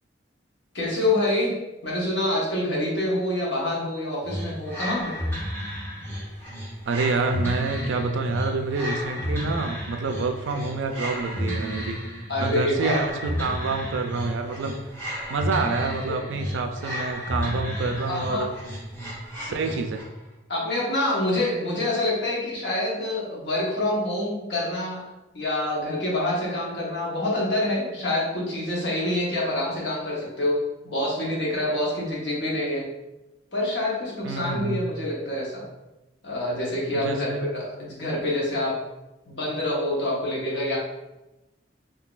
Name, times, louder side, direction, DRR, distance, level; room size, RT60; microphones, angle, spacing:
voice 1, 0.7-5.2 10.5-10.6 12.3-13.0 16.0-16.2 18.0-18.4 19.5-19.6 20.5-25.0 25.3-32.9 33.5-35.7 36.2-38.8 39.3-40.8, left 1 dB, 65° left, -5 dB, 1.1 m, -26 dB
sound 1, 4.2-20.2, equal, 10° left, 1.2 m, -32 dB
voice 2, 6.9-12.1 12.4-14.9 15.3-18.5 19.4-20.1 34.2-34.8 36.9-37.5, right 3 dB, 85° right, 5 dB, 0.4 m, -27 dB
3.7 x 2.8 x 2.4 m, 1.0 s
head